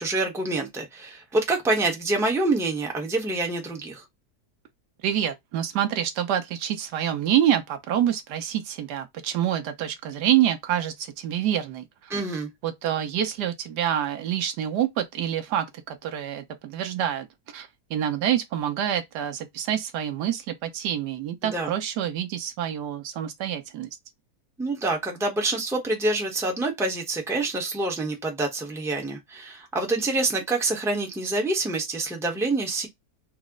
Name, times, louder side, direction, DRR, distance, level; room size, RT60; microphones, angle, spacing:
voice 1, 0.0-4.0 12.1-12.5 21.5-21.7 24.6-32.9, right 2 dB, ahead, 0.7 m, -26 dB
voice 2, 5.0-12.1 12.6-17.3 17.5-23.9, right 10 dB, 85° right, 1.4 m, -27 dB
4.2 x 2.1 x 3.6 m
omnidirectional pair, 1.7 m